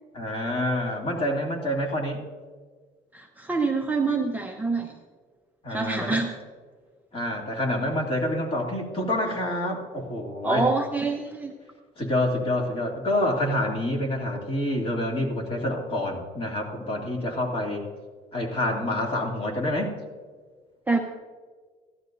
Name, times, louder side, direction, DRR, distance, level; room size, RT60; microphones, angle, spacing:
voice 1, 0.1-2.2 5.6-6.2 7.1-10.7 12.0-17.9 18.3-19.9, left 1 dB, 30° left, 0 dB, 2.6 m, -27 dB
voice 2, 3.1-4.9 5.7-6.3 10.4-11.5 20.9-21.0, right 3 dB, 10° right, 1 dB, 0.8 m, -26 dB
16.0 x 12.0 x 2.6 m, 1.5 s
cardioid pair, 110°, 17 cm